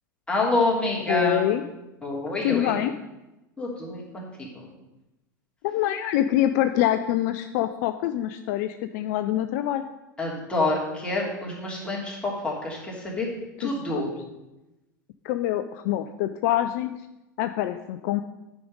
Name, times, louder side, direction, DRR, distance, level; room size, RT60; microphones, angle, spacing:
voice 1, 0.3-1.5 2.0-2.8 3.6-4.7 10.2-13.3 13.6-14.1, left 2 dB, 10° left, -4 dB, 2.9 m, -27 dB
voice 2, 1.1-1.6 2.4-2.9 5.6-9.8 13.6-14.0 15.2-16.9 17.4-18.2, left 13 dB, 55° left, 10 dB, 0.4 m, -25 dB
9.9 x 5.1 x 5.3 m, 0.99 s
figure-of-eight pair, 85°, 11 cm